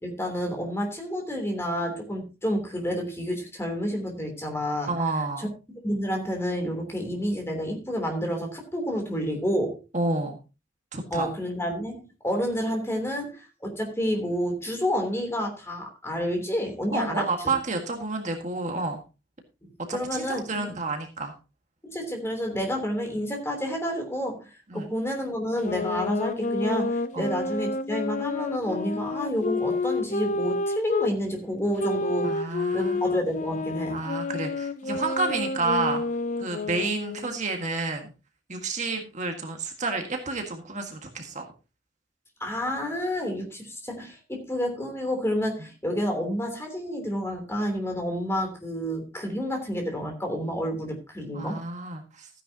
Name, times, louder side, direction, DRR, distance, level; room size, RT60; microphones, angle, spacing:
voice 1, 0.0-4.9 5.4-5.5 5.8-9.8 11.1-17.3 19.6-20.7 21.8-34.0 42.4-51.6, equal, 15° left, 2 dB, 3.3 m, -29 dB
voice 2, 4.9-5.5 9.9-10.4 10.9-11.3 16.9-19.0 19.9-21.3 24.7-24.9 27.1-27.3 32.2-33.0 33.9-36.0 36.4-38.1 38.5-41.5 51.3-52.3, right 3 dB, 40° right, 3 dB, 1.8 m, -30 dB
sound 1, 25.6-31.1 31.8-37.3, left 3 dB, 40° left, 0.5 m, -29 dB
15.0 x 10.0 x 2.9 m, 0.30 s
head